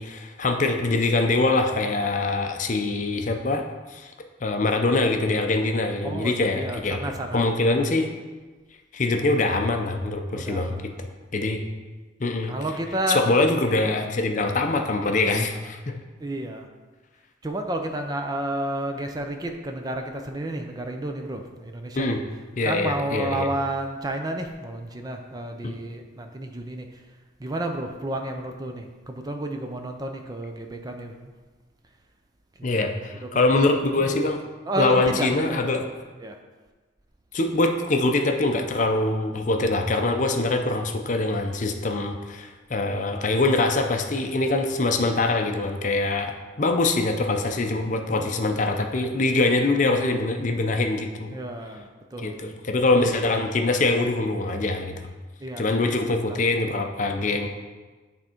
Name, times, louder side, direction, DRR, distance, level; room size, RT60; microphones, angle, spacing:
voice 1, 0.0-3.6 3.9-4.1 4.4-7.0 7.3-8.1 8.9-11.6 12.2-12.5 13.1-16.0 22.0-22.2 22.6-23.5 25.6-25.7 32.6-34.4 34.8-35.8 37.3-51.4 52.2-55.0 55.6-57.5, left 2 dB, 40° left, 4 dB, 0.6 m, -24 dB
voice 2, 6.0-7.7 10.3-10.8 12.5-13.2 16.2-16.7 17.4-22.2 22.6-26.9 27.4-31.3 32.8-32.9 33.2-33.4 33.9-34.1 34.6-35.7 36.2-36.4 48.1-48.3 51.3-52.4 55.4-55.6, right 1 dB, 20° right, 4 dB, 0.5 m, -31 dB
9.2 x 3.6 x 4.4 m, 1.3 s
head